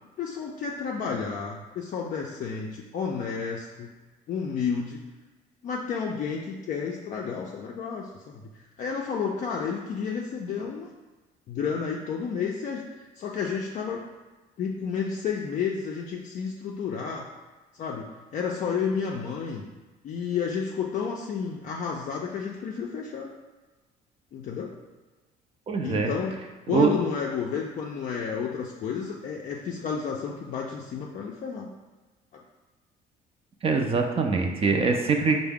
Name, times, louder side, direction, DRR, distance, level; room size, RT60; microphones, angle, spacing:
voice 1, 0.2-3.9 4.3-5.1 5.6-10.9 11.5-12.8 13.2-14.0 14.6-17.3 17.8-19.7 20.0-23.3 24.3-24.7 25.8-26.4 26.7-31.7 32.3-32.4, left 6 dB, 50° left, -2 dB, 0.4 m, -31 dB
voice 2, 25.7-26.1 26.7-26.9 33.6-35.4, right 4 dB, 35° right, 3 dB, 0.4 m, -23 dB
4.6 x 2.0 x 3.5 m, 1.2 s
cardioid pair, 110°, 17 cm